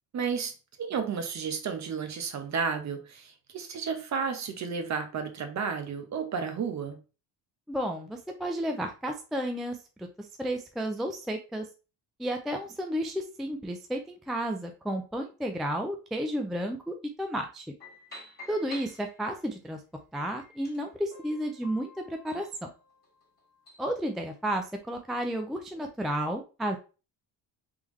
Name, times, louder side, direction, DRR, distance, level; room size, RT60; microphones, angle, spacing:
voice 1, 0.1-7.0, right 6 dB, 40° right, 0.8 m, -32 dB
voice 2, 7.7-11.7 12.2-17.7 18.5-19.8 20.1-22.7 23.8-26.8, equal, ahead, 0.3 m, -32 dB
sound 1, 17.8-19.5 20.1-23.9, left 2 dB, 20° left, 2.0 m, -50 dB
3.5 x 3.4 x 3.1 m
cardioid pair, 115°, 44 cm